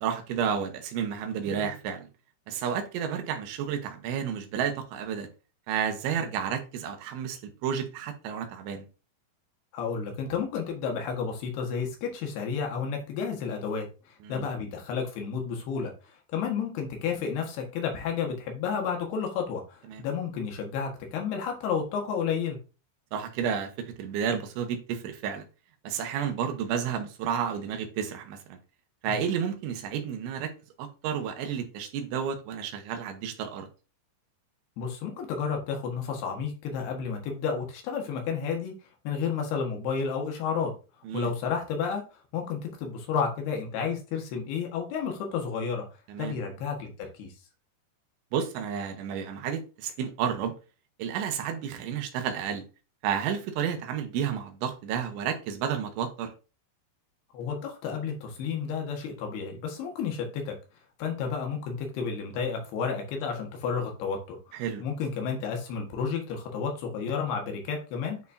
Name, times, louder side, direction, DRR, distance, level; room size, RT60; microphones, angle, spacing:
voice 1, 0.0-2.1 2.5-5.3 5.7-8.9 14.2-14.5 19.9-20.0 23.1-25.5 25.8-28.6 29.0-30.5 30.8-33.7 41.0-41.3 46.1-46.4 48.3-50.5 51.0-52.6 53.0-56.3 64.5-64.8, right 8 dB, 80° right, 3.3 m, -31 dB
voice 2, 9.7-13.9 14.3-15.9 16.3-22.6 29.1-29.2 34.8-38.7 39.0-40.7 41.1-42.0 42.3-45.8 46.2-47.3 57.3-60.5 61.0-68.2, left 6 dB, 65° left, 3.2 m, -31 dB
9.6 x 4.3 x 2.7 m
omnidirectional pair, 5.5 m